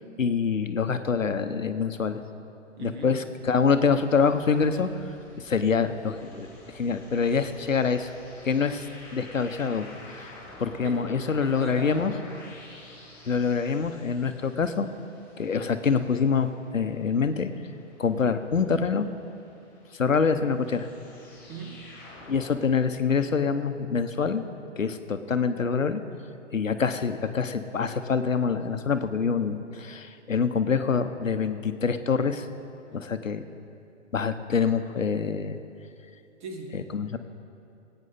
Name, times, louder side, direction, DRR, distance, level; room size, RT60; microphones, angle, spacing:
voice 1, 0.2-2.2 2.8-4.9 5.4-6.5 6.7-8.1 8.4-8.8 9.1-12.1 13.3-14.9 15.4-17.5 18.0-19.1 19.9-20.9 22.3-24.4 24.8-26.0 26.5-32.5 32.9-33.4 34.1-35.6 36.7-37.2, left 5 dB, 90° left, 9 dB, 0.9 m, -25 dB
voice 2, 2.8-3.2 10.8-11.1 11.4-12.0 21.5-21.8 36.4-36.7, right 3 dB, 40° right, 3 dB, 1.7 m, -39 dB
sound 1, 3.4-22.5, left 1 dB, 5° left, 2.4 m, -49 dB
19.0 x 9.0 x 4.2 m, 2.6 s
figure-of-eight pair, 135°, 38 cm